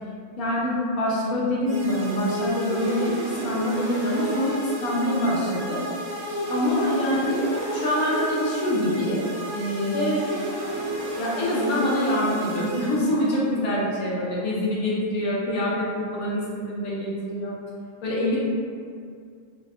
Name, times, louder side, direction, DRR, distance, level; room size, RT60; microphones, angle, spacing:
voice 1, 0.4-5.8 6.5-9.2 9.5-10.2 11.2-17.5 18.0-18.4, left 1 dB, 80° left, -6 dB, 1.2 m, -25 dB
sound 1, 1.7-13.5, right 1 dB, 85° right, 1.7 m, -31 dB
4.3 x 2.2 x 2.3 m, 2.2 s
omnidirectional pair, 1.5 m